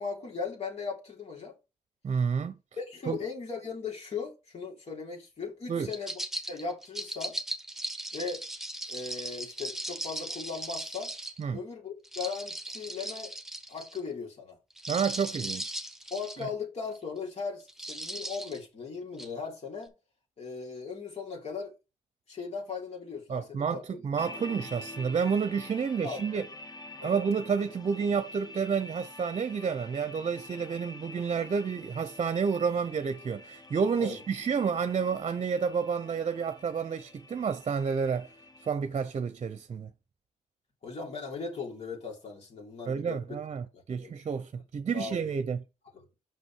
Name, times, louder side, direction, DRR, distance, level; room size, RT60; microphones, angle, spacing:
voice 1, 0.0-1.5 2.8-7.4 8.1-8.4 8.9-11.1 11.5-13.3 13.7-14.6 16.1-19.9 20.4-21.7 22.3-24.0 26.0-26.2 27.0-27.2 34.0-34.2 40.8-43.2 43.7-44.1 44.9-45.2 45.9-46.0, left 5 dB, 55° left, 3.5 m, -38 dB
voice 2, 2.0-2.5 3.1-3.2 5.7-5.9 11.4-11.6 14.9-15.8 23.3-26.5 27.0-38.3 38.6-39.9 42.9-45.6, right 6 dB, 50° right, 0.7 m, -30 dB
sound 1, 5.9-11.4 12.0-14.0 14.7-16.4 16.9-17.2 17.7-18.6 19.2-19.3, right 1 dB, 5° right, 1.4 m, -38 dB
sound 2, 24.2-38.7, left 2 dB, 30° left, 0.8 m, -47 dB
6.1 x 5.4 x 4.6 m
cardioid pair, 75°, 13 cm